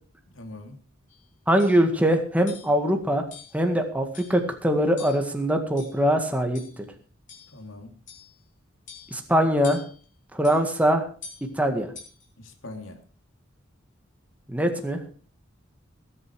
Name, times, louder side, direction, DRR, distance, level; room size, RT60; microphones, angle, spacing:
voice 1, 0.3-0.8 7.5-7.9 12.4-13.0, left 2 dB, 85° left, 5 dB, 3.1 m, -41 dB
sound 1, 1.1-1.2 1.6-1.8 2.5-2.8 3.3-3.6 4.1-4.5 5.0-5.3 5.8-6.1 6.6-6.8 7.3-7.6 8.1-8.4 8.9-9.2 9.6-10.0 10.4-10.6 11.2-11.5 12.0-12.3, left 6 dB, 40° left, 5.2 m, -45 dB
voice 2, 1.5-3.2 3.5-6.9 9.1-9.8 10.3-11.1 11.6-11.9 14.5-15.0, equal, 5° right, 4 dB, 1.9 m, -22 dB
20.5 x 8.9 x 4.8 m, 0.41 s
head